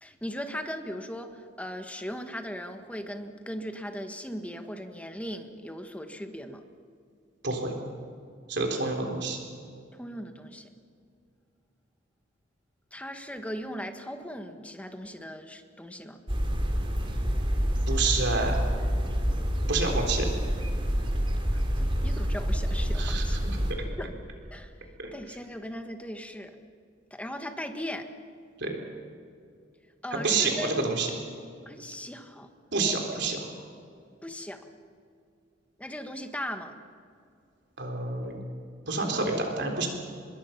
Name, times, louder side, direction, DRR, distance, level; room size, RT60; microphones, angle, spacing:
voice 1, 0.0-6.6 9.9-10.7 12.9-16.2 21.5-23.4 24.0-24.1 24.5-24.7 25.1-26.5 27.1-28.1 30.0-30.9 31.6-32.5 33.2-33.3 34.2-34.6 35.8-36.7, equal, 5° left, 6 dB, 1.5 m, -38 dB
voice 2, 8.5-9.4 17.9-18.6 19.7-20.3 22.9-23.6 25.0-25.1 28.6-28.8 30.1-31.1 32.7-33.5 37.8-38.4 38.9-39.9, right 3 dB, 65° right, 3 dB, 3.8 m, -28 dB
sound 1, 16.3-23.7, equal, 30° right, 2.9 m, -27 dB
24.5 x 22.0 x 5.9 m, 2.3 s
head